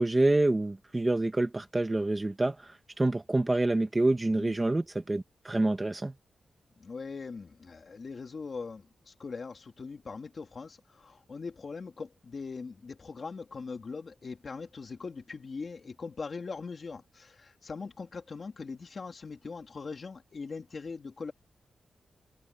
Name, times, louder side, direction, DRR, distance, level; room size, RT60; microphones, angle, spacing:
voice 1, 0.0-6.1, right 2 dB, 15° right, 1.2 m, -27 dB
voice 2, 6.8-21.3, left 4 dB, 40° left, 2.9 m, -41 dB
wide cardioid pair, 165°, 0 cm